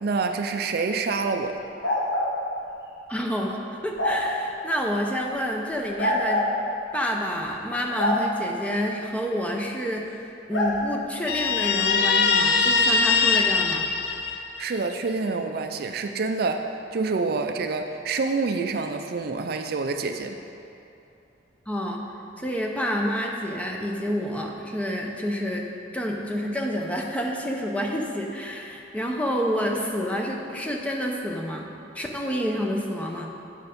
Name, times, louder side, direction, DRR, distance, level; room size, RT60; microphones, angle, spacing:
voice 1, 0.0-1.6 14.6-20.4, right 4 dB, 55° right, 6 dB, 0.4 m, -27 dB
sound 1, 1.8-2.3 4.0-4.2 6.0-6.5 7.9-8.2 10.5-10.7, left 1 dB, 85° left, 1.3 m, -24 dB
voice 2, 3.1-6.5 6.9-13.9 21.7-22.0 22.4-25.7 25.9-33.3, equal, 10° left, 0 dB, 0.6 m, -28 dB
Guitar, 11.3-14.8, left 5 dB, 60° left, 0.5 m, -22 dB
8.0 x 5.4 x 5.1 m, 2.7 s
head